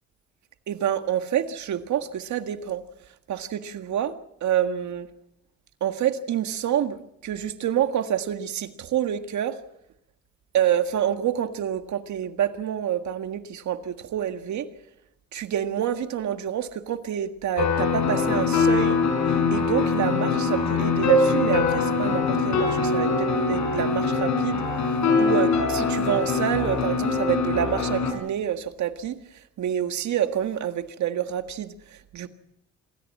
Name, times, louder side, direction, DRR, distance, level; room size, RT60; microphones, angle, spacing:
voice 1, 0.7-2.8 3.3-4.1 4.4-5.1 5.8-9.6 10.5-14.7 15.3-19.0 19.3-24.6 25.2-29.2 29.6-31.7 32.1-32.3, right 10 dB, 70° right, 8 dB, 1.8 m, -27 dB
sound 1, 17.6-28.1, left 4 dB, 65° left, 5.2 m, -23 dB
26.5 x 14.0 x 7.6 m, 0.81 s
cardioid pair, 90°, 30 cm